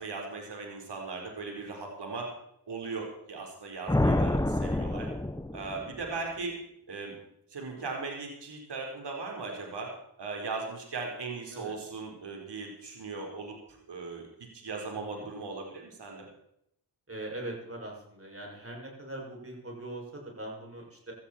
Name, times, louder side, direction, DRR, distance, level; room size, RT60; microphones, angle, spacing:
voice 1, 0.0-2.3 2.7-5.1 5.5-6.6 6.9-7.1 7.5-9.9 10.2-13.6 13.9-14.2 14.5-16.3, right 4 dB, 75° right, 1 dB, 4.4 m, -38 dB
sound 1, 3.9-6.1, left 1 dB, 10° left, 1.0 m, -28 dB
voice 2, 14.9-15.3 17.1-21.1, right 1 dB, 35° right, -1 dB, 6.7 m, -41 dB
17.5 x 13.5 x 4.4 m, 0.73 s
cardioid pair, 55°, 42 cm